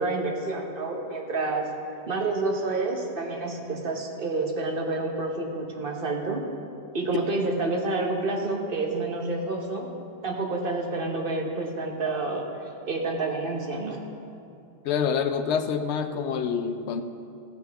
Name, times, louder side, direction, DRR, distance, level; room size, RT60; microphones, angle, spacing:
voice 1, 0.0-1.7 2.1-6.4 6.9-9.9 10.2-12.4 12.9-14.0, right 3 dB, 55° right, 1 dB, 1.2 m, -28 dB
voice 2, 14.8-17.0, left 6 dB, 80° left, 9 dB, 0.9 m, -26 dB
14.5 x 8.1 x 3.4 m, 2.6 s
omnidirectional pair, 1.1 m